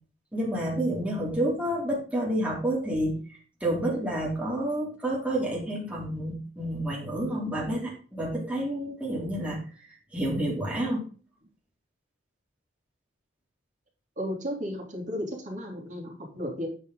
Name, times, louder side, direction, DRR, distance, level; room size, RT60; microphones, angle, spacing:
voice 1, 0.3-9.6 10.1-11.0, right 1 dB, 5° right, -4 dB, 2.6 m, -29 dB
voice 2, 14.2-16.7, equal, 40° right, -1 dB, 2.8 m, -34 dB
8.9 x 5.8 x 3.9 m, 0.40 s
head